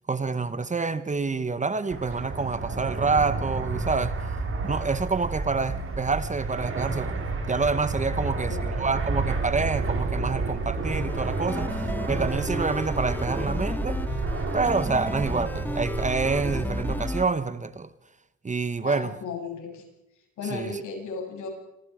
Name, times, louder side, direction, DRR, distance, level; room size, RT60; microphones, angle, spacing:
voice 1, 0.1-4.2 4.6-14.0 14.5-17.9 18.4-19.1 20.5-20.7, right 4 dB, 25° right, 1.1 m, -27 dB
Fixed-wing aircraft airplane, 1.9-17.0, right 3 dB, 45° right, 4.6 m, -31 dB
voice 2, 8.1-8.6 18.8-19.8 20.4-21.5, left 4 dB, 75° left, 8.0 m, -35 dB
sound 1, 10.9-17.2, left 1 dB, 5° left, 1.9 m, -32 dB
29.0 x 25.5 x 5.0 m
cardioid pair, 90°, 30 cm